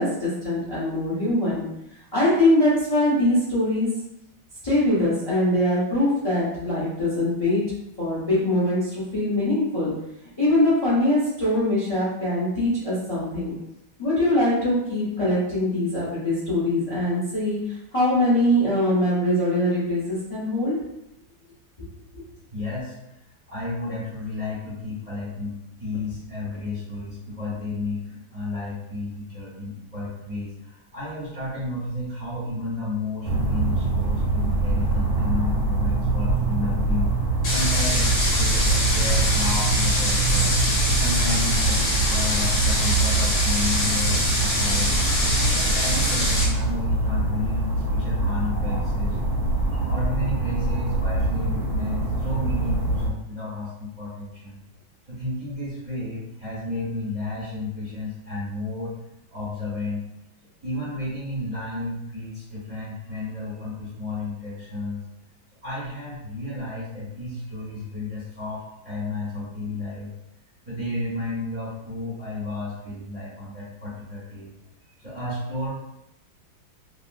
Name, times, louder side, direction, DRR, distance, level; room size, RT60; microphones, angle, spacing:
voice 1, 0.0-1.7 2.1-4.0 4.6-7.6 8.0-9.9 10.4-13.5 14.0-20.8 22.1-22.2, left 1 dB, 30° left, -10 dB, 0.7 m, -22 dB
voice 2, 22.5-23.2 23.5-40.6 40.9-45.0 45.3-49.2 49.7-54.6 55.1-58.9 59.3-60.0 60.6-65.0 65.6-70.1 70.6-74.5 75.0-75.7, left 2 dB, 20° right, -10 dB, 1.1 m, -32 dB
sound 1, 33.2-53.1, right 2 dB, 60° right, 1.1 m, -24 dB
sound 2, 37.4-46.5, left 1 dB, 55° left, 1.1 m, -24 dB
3.1 x 2.8 x 2.5 m, 0.83 s
omnidirectional pair, 2.2 m